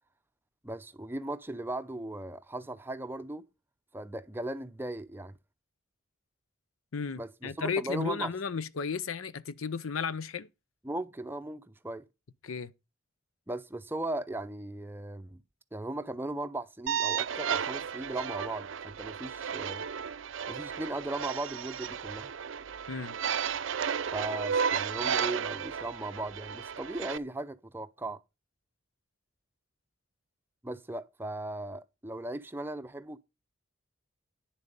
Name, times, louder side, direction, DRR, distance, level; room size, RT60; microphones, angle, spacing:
voice 1, 0.6-3.4 3.9-5.3 7.2-8.3 10.8-12.0 13.5-15.4 15.7-19.9 20.5-22.3 24.1-28.2 30.6-33.2, right 2 dB, 10° right, 0.5 m, -37 dB
voice 2, 6.9-10.5 12.4-12.7 22.9-23.2, left 5 dB, 85° left, 0.6 m, -34 dB
sound 1, 16.9-27.2, right 7 dB, 70° right, 0.5 m, -33 dB
9.9 x 7.4 x 5.4 m
head